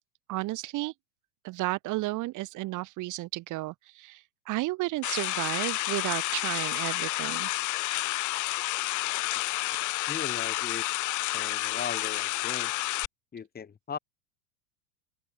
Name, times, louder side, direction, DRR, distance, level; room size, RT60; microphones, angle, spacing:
voice 1, 0.3-0.9 1.4-7.5, right 19 dB, 45° right, 4.2 m, -33 dB
sound 1, 5.0-13.1, left 18 dB, 45° left, 3.4 m, -30 dB
voice 2, 10.1-10.9 11.3-12.7 13.3-14.0, left 7 dB, 20° left, 5.3 m, -38 dB
open air
hypercardioid pair, 115°, 41 cm